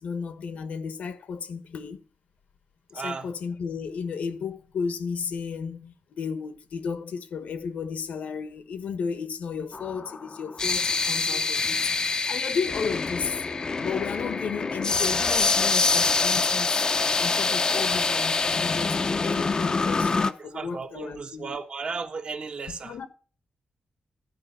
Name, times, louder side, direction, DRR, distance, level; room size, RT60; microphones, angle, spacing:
voice 1, 0.0-2.0 2.9-13.5 13.8-16.9 17.2-21.5 22.8-23.1, left 6 dB, 80° left, 1.3 m, -33 dB
voice 2, 2.9-3.3 11.3-11.4 20.4-23.0, right 4 dB, 45° right, 1.2 m, -35 dB
sound 1, 9.7-20.3, left 4 dB, 30° left, 0.6 m, -25 dB
13.0 x 5.2 x 6.7 m
wide cardioid pair, 135°, 2 cm